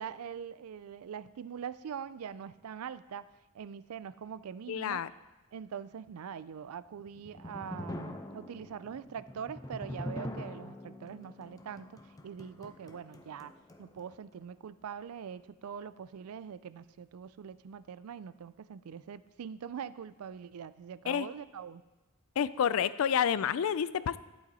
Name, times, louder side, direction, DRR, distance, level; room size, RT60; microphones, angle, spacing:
voice 1, 0.0-3.3 3.5-5.0 5.5-12.0 12.2-13.5 13.8-21.8, right 7 dB, 80° right, 16 dB, 0.4 m, -43 dB
voice 2, 4.7-5.1 21.1-21.3 22.4-24.2, left 8 dB, 65° left, 17 dB, 0.3 m, -29 dB
sound 1, 6.9-14.1, left 1 dB, 15° left, 0.6 m, -44 dB
11.5 x 7.8 x 4.1 m, 1.1 s
head